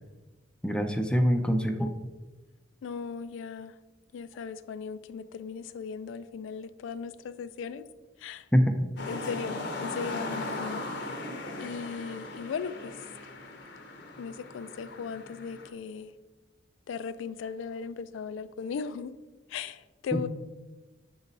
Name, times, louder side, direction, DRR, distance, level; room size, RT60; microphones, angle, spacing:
voice 1, 0.6-2.0 8.5-8.7 20.1-20.2, equal, 5° left, 6 dB, 0.4 m, -24 dB
voice 2, 2.8-3.7 4.1-7.8 8.2-8.4 9.1-10.8 11.6-12.9 14.2-16.1 16.9-19.1 19.5-20.3, left 6 dB, 85° left, 13 dB, 0.3 m, -37 dB
sound 1, 9.0-15.7, left 2 dB, 65° left, 0.7 m, -38 dB
6.2 x 3.9 x 4.0 m, 1.2 s
head